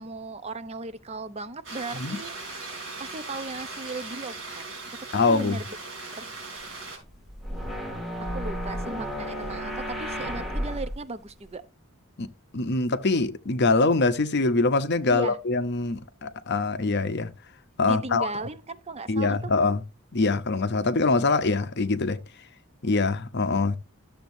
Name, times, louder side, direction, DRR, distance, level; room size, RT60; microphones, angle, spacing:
voice 1, 0.0-2.4 3.0-5.6 6.1-6.3 8.3-11.6 15.1-15.4 17.8-19.5, right 3 dB, 30° right, 0.6 m, -37 dB
sound 1, 1.6-7.0, right 3 dB, 65° right, 4.5 m, -39 dB
voice 2, 5.1-5.6 12.2-17.3 17.8-18.3 19.1-19.8 20.1-22.2 22.8-23.8, left 3 dB, 55° left, 0.8 m, -24 dB
sound 2, 7.0-11.0, equal, ahead, 2.1 m, -32 dB
12.5 x 7.2 x 2.7 m
head